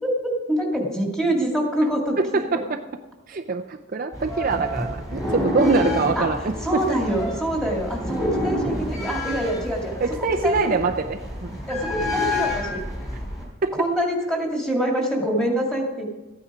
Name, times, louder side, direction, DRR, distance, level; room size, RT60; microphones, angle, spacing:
voice 1, 0.0-2.4 6.1-6.3 6.6-10.8 11.7-12.8 13.7-16.0, right 1 dB, 5° left, -2 dB, 2.3 m, -25 dB
voice 2, 2.2-2.8 3.3-6.5 6.9-7.0 10.0-11.6 13.6-13.7, right 4 dB, 40° right, 5 dB, 0.5 m, -24 dB
sound 1, 4.1-13.4, left 1 dB, 20° left, 3.8 m, -28 dB
14.0 x 9.2 x 4.9 m, 1.1 s
head